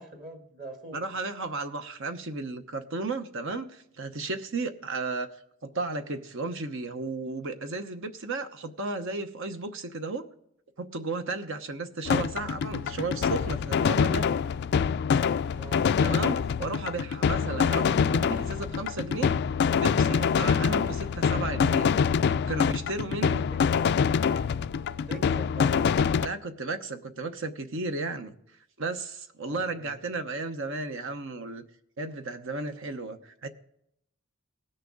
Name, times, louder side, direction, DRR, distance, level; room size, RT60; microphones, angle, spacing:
voice 1, 0.0-1.0 15.6-16.0 23.5-24.1 25.1-25.7 29.5-29.9, right 2 dB, 40° right, 3 dB, 2.1 m, -44 dB
voice 2, 0.9-5.3 5.6-10.3 10.8-14.3 16.0-19.4 19.7-21.9 22.5-23.5 26.2-28.3 28.8-31.6 32.0-33.5, right 3 dB, 60° right, 7 dB, 0.9 m, -34 dB
sound 1, 12.1-26.3, left 6 dB, 50° left, 0.3 m, -25 dB
19.5 x 6.6 x 3.7 m, 0.73 s
head